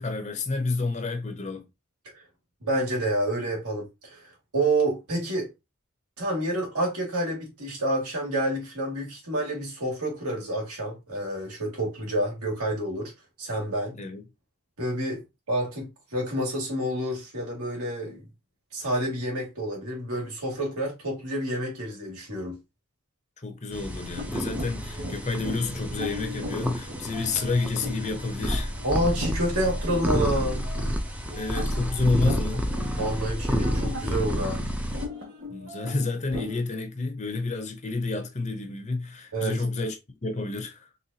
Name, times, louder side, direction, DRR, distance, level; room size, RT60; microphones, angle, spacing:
voice 1, 0.0-1.6 14.0-14.2 23.4-28.7 31.3-32.7 35.5-40.9, left 3 dB, 30° left, 0.7 m, -29 dB
voice 2, 2.6-5.5 6.2-13.1 13.4-14.0 14.8-18.3 18.7-22.6 28.8-30.6 33.0-34.6 39.3-39.6, right 1 dB, 85° right, 2.3 m, -28 dB
sound 1, 23.7-35.1, equal, 5° right, 0.5 m, -30 dB
sound 2, 24.2-36.6, left 1 dB, 60° right, 1.9 m, -39 dB
4.1 x 3.6 x 2.8 m
head